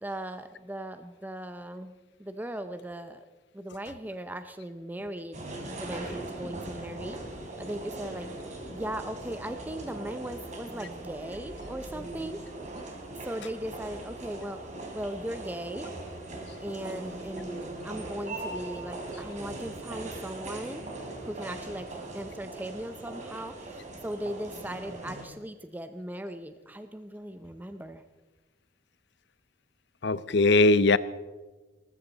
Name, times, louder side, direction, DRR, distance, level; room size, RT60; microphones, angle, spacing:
voice 1, 0.0-1.9 2.2-3.3 3.5-5.4 5.8-7.2 7.6-8.3 8.7-12.4 13.2-14.6 14.9-15.9 16.6-20.8 21.2-21.9 22.1-28.0, right 1 dB, 10° right, 9 dB, 0.6 m, -38 dB
sound 1, 5.3-25.2, right 2 dB, 40° right, 3.2 m, -40 dB
voice 2, 30.0-31.0, left 2 dB, 65° left, 17 dB, 0.6 m, -20 dB
19.0 x 15.0 x 4.1 m, 1.2 s
head